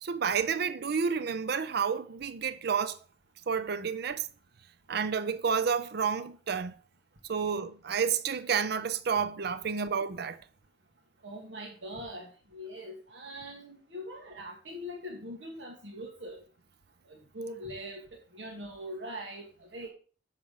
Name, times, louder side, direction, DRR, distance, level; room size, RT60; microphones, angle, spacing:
voice 1, 0.0-3.0 3.5-4.3 4.9-6.8 7.3-10.4, right 6 dB, 60° right, 0.6 m, -30 dB
voice 2, 11.2-16.4 17.1-19.5 19.7-19.9, equal, 85° right, 1.6 m, -42 dB
7.5 x 6.3 x 5.3 m
head